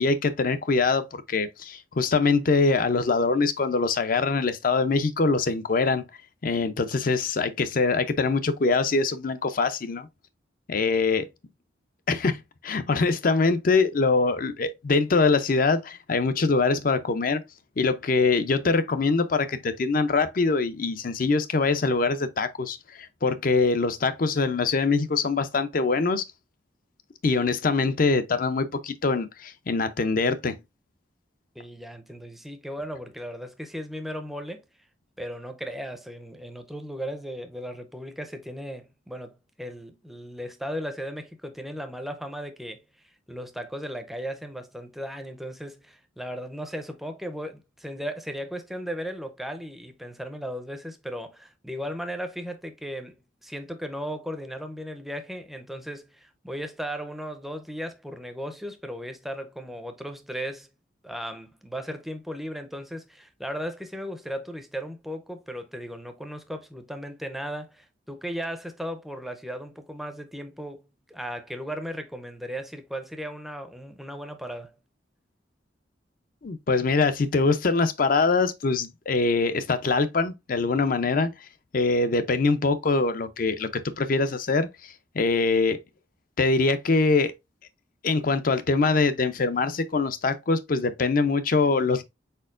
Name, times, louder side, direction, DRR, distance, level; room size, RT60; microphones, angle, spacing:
voice 1, 0.0-6.0 6.4-10.1 10.7-11.3 12.1-17.4 17.8-26.2 27.2-30.6 76.4-81.3 81.7-85.8 86.4-87.3 88.0-92.0, left 4 dB, 50° left, 0.5 m, -23 dB
voice 2, 31.6-34.6 35.2-53.2 53.4-60.7 61.0-70.8 71.1-74.8, equal, ahead, 0.5 m, -36 dB
4.4 x 4.4 x 2.4 m
head